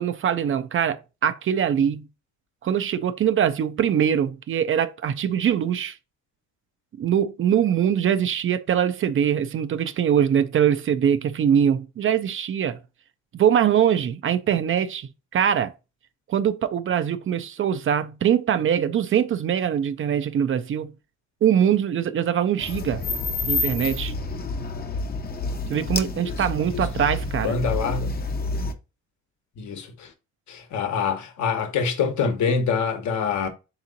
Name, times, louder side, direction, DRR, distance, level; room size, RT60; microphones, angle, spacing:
voice 1, 0.0-2.1 2.6-6.0 7.0-12.8 13.3-15.7 16.3-20.9 21.4-23.0 23.5-24.1 25.7-27.6, right 9 dB, 45° right, 0.4 m, -22 dB
sound 1, 22.6-28.7, left 3 dB, 30° left, 0.6 m, -28 dB
voice 2, 26.1-26.8 27.4-28.1 29.6-30.1 30.5-33.5, left 5 dB, 70° left, 1.0 m, -26 dB
3.6 x 2.9 x 3.9 m
cardioid pair, 90°, 30 cm